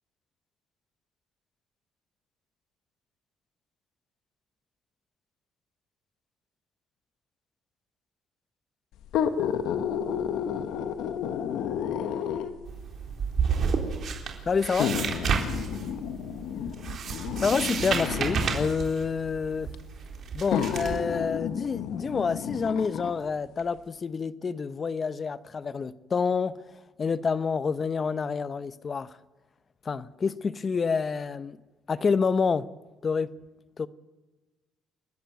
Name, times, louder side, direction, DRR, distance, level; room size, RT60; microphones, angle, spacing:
sound 1, 9.0-12.7 13.6-13.7 14.8-18.7 19.7-19.8 20.5-23.2 23.6-23.7, left 8 dB, 80° left, 1.6 m, -31 dB
sound 2, 12.7-21.0, right 6 dB, 55° right, 3.9 m, -31 dB
voice 1, 14.4-15.0 17.4-19.7 20.3-26.6 27.0-29.2 29.8-31.6 31.9-32.7 33.0-33.3 33.8-33.9, left 5 dB, 35° left, 0.9 m, -28 dB
29.0 x 11.5 x 9.3 m
cardioid pair, 95°, 0 cm